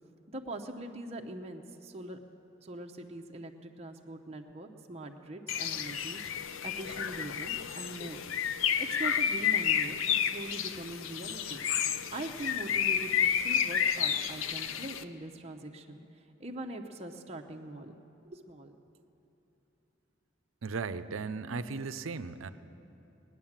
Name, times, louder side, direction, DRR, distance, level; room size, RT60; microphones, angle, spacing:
voice 1, 0.3-2.2 2.6-6.2 6.6-8.2 8.8-11.6 12.1-16.0 16.4-18.0 18.2-18.8, right 1 dB, 30° right, 2 dB, 0.8 m, -42 dB
Bird, 5.5-15.0, left 8 dB, 90° left, 0.6 m, -31 dB
voice 2, 20.6-22.5, right 4 dB, 90° right, 12 dB, 0.6 m, -36 dB
19.5 x 9.8 x 7.3 m, 2.9 s
head